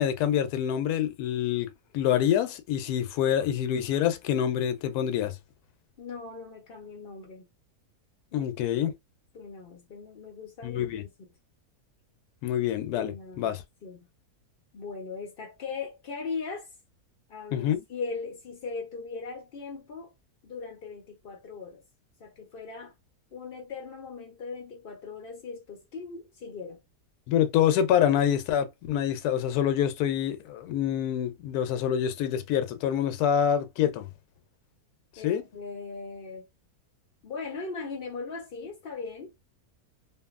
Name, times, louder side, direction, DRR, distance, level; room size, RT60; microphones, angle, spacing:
voice 1, 0.0-5.3 8.3-8.9 10.6-11.0 12.4-13.6 17.5-17.8 27.3-34.1 35.2-35.4, left 10 dB, 75° left, 1.1 m, -26 dB
voice 2, 6.0-7.5 8.3-8.5 9.3-10.8 11.2-11.3 13.0-14.1 14.7-16.7 17.3-20.1 20.4-21.8 22.2-22.9 23.3-26.8 35.2-36.5 37.2-39.3, left 4 dB, 55° left, 0.6 m, -39 dB
2.6 x 2.6 x 2.4 m
omnidirectional pair, 1.7 m